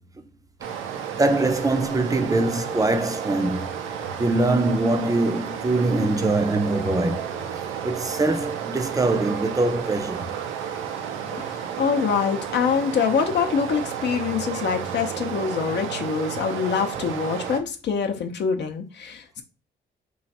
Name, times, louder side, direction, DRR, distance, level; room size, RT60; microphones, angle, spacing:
Stream, 0.6-17.6, right 8 dB, 85° right, 0.5 m, -32 dB
voice 1, 1.1-3.7 4.2-7.4 7.8-10.3, right 2 dB, 15° right, 0.5 m, -23 dB
voice 2, 11.3-19.4, left 6 dB, 60° left, 0.7 m, -25 dB
3.1 x 2.5 x 4.1 m
cardioid pair, 90°, 20 cm